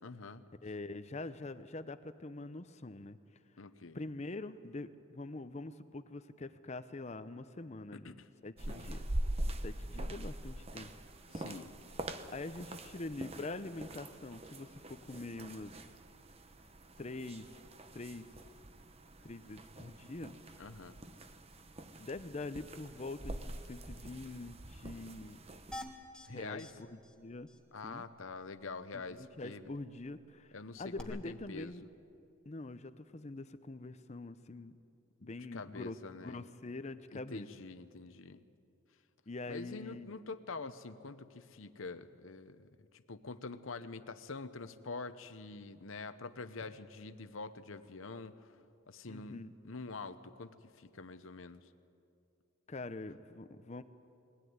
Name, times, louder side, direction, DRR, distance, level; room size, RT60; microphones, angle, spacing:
voice 1, 0.0-0.4 3.6-4.0 7.9-8.3 8.7-9.0 11.3-11.7 20.6-21.0 26.2-26.7 27.7-29.7 30.5-31.7 35.2-36.5 37.1-38.4 39.5-42.7 43.1-48.4 48.9-51.7, left 3 dB, 75° left, 11 dB, 0.9 m, -46 dB
voice 2, 0.6-3.2 3.9-8.2 8.4-9.0 9.6-10.9 12.3-15.7 17.0-17.4 17.9-18.3 19.2-20.3 22.0-25.4 26.3-27.5 27.8-28.0 28.9-31.8 32.5-34.7 35.2-37.5 39.3-40.1 40.6-40.7 49.1-49.5 52.7-53.8, left 2 dB, 35° left, 12 dB, 0.6 m, -44 dB
sound 1, 8.6-25.8, right 1 dB, 30° right, 0.9 m, -44 dB
sound 2, 25.7-26.3 26.6-26.7 27.0-27.1 27.5-27.6 31.0-31.1, left 1 dB, 5° left, 1.6 m, -45 dB
21.5 x 17.0 x 9.5 m, 2.5 s
head